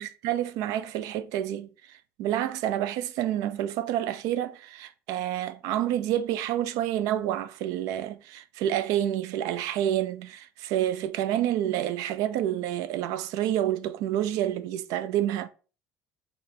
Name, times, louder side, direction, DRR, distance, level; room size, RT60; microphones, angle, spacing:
voice 1, 0.0-15.5, right 11 dB, 70° right, 0.4 m, -28 dB
4.2 x 2.8 x 3.2 m
supercardioid pair, 105°, 6 cm